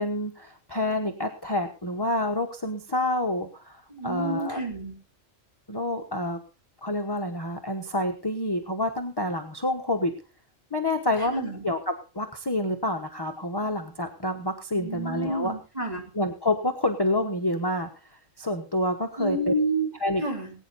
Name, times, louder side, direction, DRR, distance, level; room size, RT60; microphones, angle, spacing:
voice 1, 0.0-4.6 5.7-6.4 6.8-10.1 10.7-15.5 16.1-19.6 20.0-20.2, left 1 dB, 20° left, 4 dB, 1.1 m, -28 dB
voice 2, 3.9-4.9 11.2-11.6 14.7-16.0 19.2-19.9 20.2-20.5, right 1 dB, 30° right, 0 dB, 3.7 m, -29 dB
20.0 x 9.3 x 4.1 m, 0.33 s
omnidirectional pair, 1.3 m